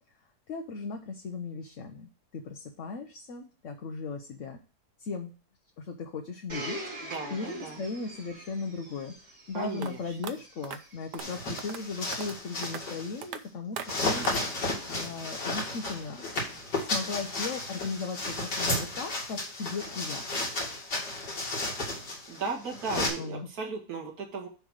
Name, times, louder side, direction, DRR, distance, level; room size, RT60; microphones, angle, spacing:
voice 1, 0.5-4.6 5.0-5.3 5.8-9.1 9.5-16.2 16.8-20.4 23.2-23.5, left 4 dB, 55° left, 4 dB, 1.1 m, -37 dB
Domestic sounds home sounds, 6.5-11.3 12.1-12.2, right 1 dB, 45° right, 2.7 m, -43 dB
voice 2, 7.0-7.8 9.5-10.2 22.3-24.5, right 4 dB, 65° right, 0 dB, 2.0 m, -36 dB
sound 1, 9.8-9.9 10.2-10.3 10.6-10.8 11.1-11.3 11.6-11.8 12.1-12.4 12.6-12.8 13.2-13.4 13.8-13.9 14.2-14.5, right 8 dB, 90° right, 1.4 m, -38 dB
sound 2, 11.2-13.2 13.8-23.1, left 2 dB, 85° left, 3.0 m, -33 dB
9.8 x 3.5 x 6.3 m, 0.37 s
omnidirectional pair, 1.7 m